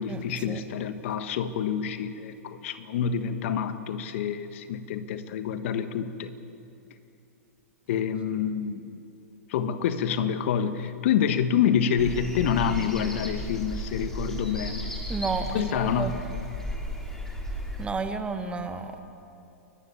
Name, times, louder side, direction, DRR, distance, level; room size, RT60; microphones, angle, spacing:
voice 1, 0.0-6.3 7.9-8.8 9.5-14.9 15.5-16.2, left 8 dB, 55° left, 10 dB, 1.4 m, -27 dB
sound 1, 12.0-17.9, equal, 5° left, 3.3 m, -34 dB
voice 2, 15.1-16.1 17.8-19.0, right 4 dB, 15° right, 7 dB, 1.7 m, -31 dB
29.5 x 15.0 x 8.5 m, 2.7 s
hypercardioid pair, 120°, 8 cm